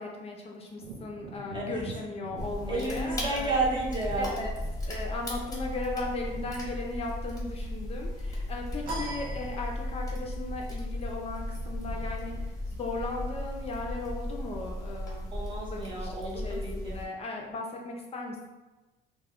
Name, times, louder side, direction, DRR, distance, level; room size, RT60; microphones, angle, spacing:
voice 1, 0.0-3.6 4.2-4.5 4.8-15.3 15.7-16.1 16.4-18.5, left 3 dB, 35° left, 0 dB, 0.4 m, -37 dB
Wind / Thunder, 0.7-8.3 8.6-15.8 16.3-16.4, right 4 dB, 90° right, 0.5 m, -49 dB
sound 1, 2.4-17.1, left 1 dB, 20° left, 0.8 m, -36 dB
voice 2, 2.7-4.4 15.3-17.0, right 3 dB, 30° right, -3 dB, 0.7 m, -31 dB
sound 2, 8.9-10.2, right 1 dB, 60° right, 0.8 m, -39 dB
2.2 x 2.1 x 3.5 m, 1.1 s
cardioid pair, 110°, 17 cm